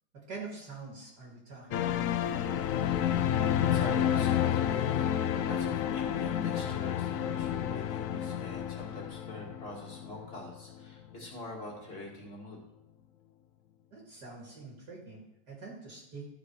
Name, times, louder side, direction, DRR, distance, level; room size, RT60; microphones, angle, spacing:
voice 1, 0.3-2.1 13.9-16.3, right 4 dB, 60° right, -3 dB, 2.6 m, -45 dB
sound 1, 1.7-10.9 11.1-11.3, left 10 dB, 80° left, 0.7 m, -30 dB
voice 2, 3.6-5.1 5.4-12.6, left 1 dB, 30° left, -1 dB, 2.4 m, -45 dB
13.5 x 6.1 x 4.7 m, 0.83 s
omnidirectional pair, 2.1 m